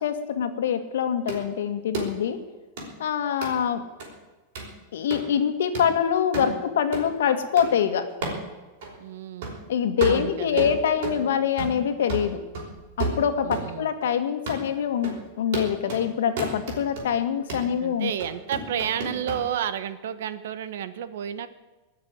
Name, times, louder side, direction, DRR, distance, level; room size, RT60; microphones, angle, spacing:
voice 1, 0.0-2.4 3.0-3.8 4.9-8.0 9.7-12.4 13.0-18.1, left 8 dB, 90° left, 8 dB, 1.8 m, -25 dB
sound 1, 1.3-1.4 1.9-2.1 2.8-2.9 3.4-3.5 4.0-4.1 4.6-4.7 5.1-5.3 5.7-5.9 6.3-6.5 6.9-7.1 7.6-7.7 8.2-8.4 8.8-8.9 9.4-9.6 10.0-11.2 11.6-11.8 12.1-13.7 14.0-14.1 14.5-14.6 15.0-15.2 15.5-16.0 16.4-17.1 17.5-17.7 18.2-19.4, right 3 dB, 50° right, 5.2 m, -31 dB
voice 2, 9.0-9.6 10.1-10.8 13.4-13.9 17.8-21.5, right 9 dB, 70° right, 13 dB, 1.1 m, -31 dB
19.5 x 6.8 x 9.5 m, 1.2 s
supercardioid pair, 175°, 0 cm